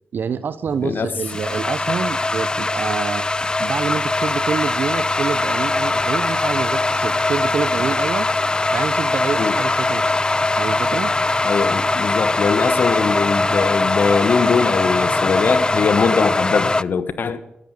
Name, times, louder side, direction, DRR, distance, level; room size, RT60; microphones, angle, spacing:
voice 1, 0.1-3.3 3.6-8.3 8.7-10.2 10.6-11.1, right 6 dB, 65° right, 0.7 m, -26 dB
sound 1, 0.7-16.8, left 2 dB, 25° left, 0.5 m, -21 dB
voice 2, 0.8-1.1 9.4-9.6 11.4-17.4, left 5 dB, 60° left, 1.2 m, -21 dB
14.0 x 10.0 x 8.1 m
supercardioid pair, 50°, 4 cm